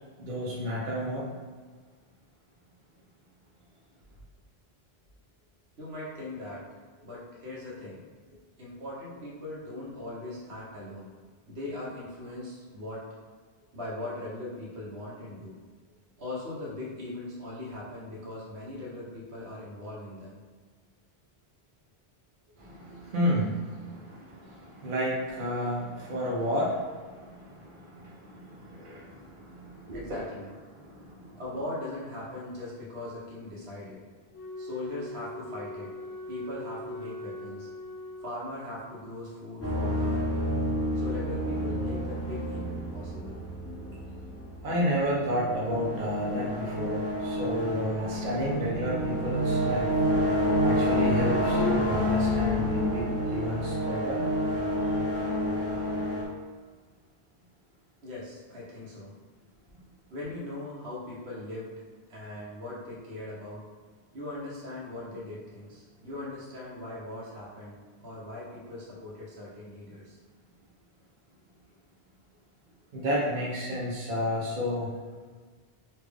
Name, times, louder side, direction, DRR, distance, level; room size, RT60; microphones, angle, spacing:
voice 1, 0.2-1.4 22.6-30.2 30.7-31.4 44.6-49.9 50.6-54.2 72.9-74.9, equal, 55° right, -5 dB, 0.9 m, -31 dB
voice 2, 5.8-6.7 7.0-8.0 8.3-11.1 11.5-13.0 13.7-15.6 16.2-20.4 29.9-30.5 31.4-34.0 34.6-35.9 36.3-37.7 38.2-40.5 40.9-43.4 58.0-59.1 60.1-61.7 62.1-63.6 64.1-70.2, left 2 dB, 75° right, -6 dB, 1.2 m, -40 dB
Wind instrument woodwind instrument, 34.3-38.7, left 1 dB, 90° left, 0.9 m, -41 dB
sound 1, 39.6-56.2, equal, 20° left, 0.4 m, -29 dB
3.3 x 2.5 x 3.5 m, 1.5 s
omnidirectional pair, 1.1 m